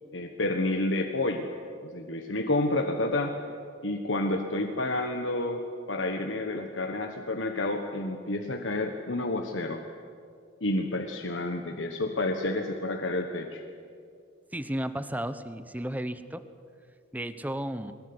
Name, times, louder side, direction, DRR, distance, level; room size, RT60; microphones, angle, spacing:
voice 1, 0.1-1.5 1.8-3.3 3.8-5.6 5.9-9.8 10.6-13.6, left 2 dB, 75° left, 4 dB, 1.4 m, -29 dB
voice 2, 14.5-16.4 17.1-17.9, right 1 dB, 10° right, 12 dB, 1.0 m, -33 dB
21.5 x 20.5 x 9.7 m, 2.3 s
head